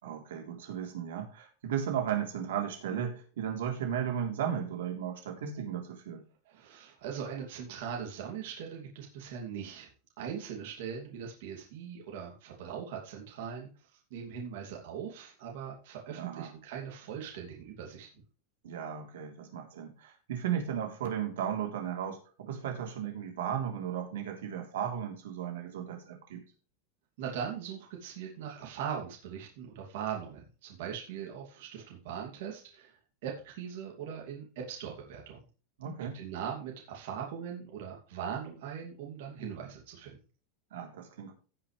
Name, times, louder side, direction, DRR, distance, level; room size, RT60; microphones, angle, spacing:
voice 1, 0.0-6.2 16.2-16.5 18.6-26.4 35.8-36.2 40.7-41.3, right 9 dB, 85° right, 2 dB, 3.5 m, -35 dB
voice 2, 6.4-9.9 10.2-18.1 27.2-35.4 36.1-40.2, right 8 dB, 65° right, -1 dB, 2.6 m, -40 dB
17.0 x 5.9 x 3.4 m, 0.37 s
supercardioid pair, 155°, 0 cm